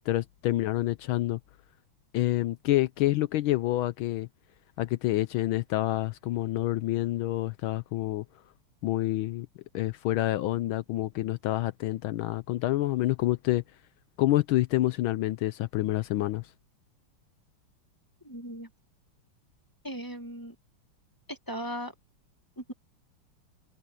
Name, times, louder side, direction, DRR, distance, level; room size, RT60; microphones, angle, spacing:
voice 1, 0.1-1.4 2.1-4.3 4.8-8.2 8.8-9.5 9.7-13.6 14.2-16.5, left 15 dB, 80° left, 1.4 m, -27 dB
voice 2, 18.2-18.7 19.8-20.5 21.3-21.9 22.6-22.7, equal, 10° left, 1.4 m, -37 dB
omnidirectional pair, 2.4 m